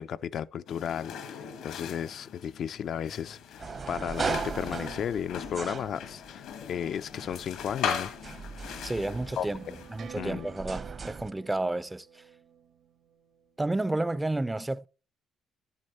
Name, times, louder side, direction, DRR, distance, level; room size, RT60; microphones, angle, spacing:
voice 1, 0.0-8.1 9.4-9.8 10.1-10.5, left 9 dB, 65° left, 0.4 m, -34 dB
sound 1, 0.7-10.1, left 7 dB, 90° left, 1.5 m, -39 dB
sound 2, 3.6-6.5 7.1-11.3, right 5 dB, 45° right, 0.8 m, -38 dB
sound 3, 8.6-13.7, right 8 dB, 65° right, 1.3 m, -51 dB
voice 2, 8.8-9.6 9.9-12.2 13.6-14.9, right 2 dB, 15° right, 0.4 m, -31 dB
11.0 x 7.1 x 4.2 m
cardioid pair, 90°, 0 cm